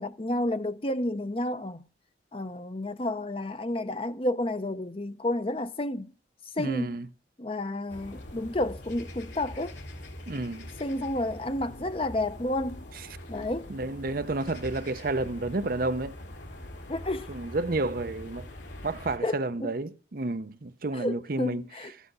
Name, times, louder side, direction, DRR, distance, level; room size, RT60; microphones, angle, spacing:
voice 1, 0.0-1.9 2.3-6.1 6.6-7.0 7.4-9.8 10.8-12.9 13.3-13.7 16.9-17.3 19.2-19.7 20.9-21.9, left 1 dB, 30° left, 0.7 m, -31 dB
voice 2, 6.6-7.1 10.3-10.7 13.7-16.2 17.3-18.5 18.8-21.6, right 2 dB, 50° right, 0.7 m, -30 dB
sound 1, 7.9-19.2, left 1 dB, 75° left, 3.7 m, -43 dB
15.0 x 10.0 x 5.5 m
head